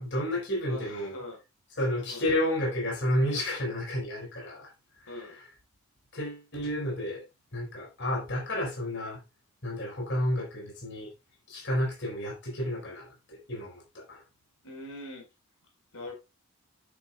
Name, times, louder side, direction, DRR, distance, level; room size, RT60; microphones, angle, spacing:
voice 1, 0.0-1.2 1.8-4.7 5.0-5.4 6.1-7.2 7.5-9.2 9.6-11.1 11.5-14.2, left 1 dB, 55° left, 4.7 m, -31 dB
voice 2, 0.7-1.4 2.1-2.4 5.1-5.4 14.6-15.3 15.9-16.1, left 2 dB, 75° left, 4.6 m, -42 dB
10.5 x 10.5 x 2.3 m
head